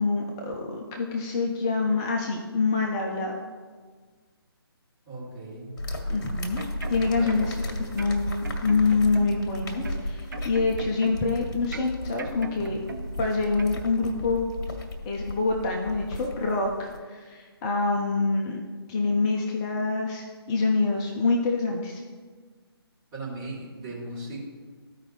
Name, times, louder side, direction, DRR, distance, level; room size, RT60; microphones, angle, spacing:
voice 1, 0.0-3.3 6.1-6.6 6.9-7.6 7.9-12.8 13.2-14.4 15.1-18.6 18.9-22.0, left 3 dB, 10° left, 0 dB, 0.4 m, -26 dB
voice 2, 5.1-5.8 7.1-8.0 23.1-24.4, right 2 dB, 15° right, -7 dB, 2.4 m, -38 dB
sound 1, 5.8-17.0, left 1 dB, 50° left, 1.6 m, -35 dB
sound 2, 6.4-7.6 8.0-9.5 9.8-11.4 11.7-13.2 13.6-13.8, right 4 dB, 50° right, 0.7 m, -40 dB
14.0 x 4.9 x 3.1 m, 1.5 s
figure-of-eight pair, 145°, 13 cm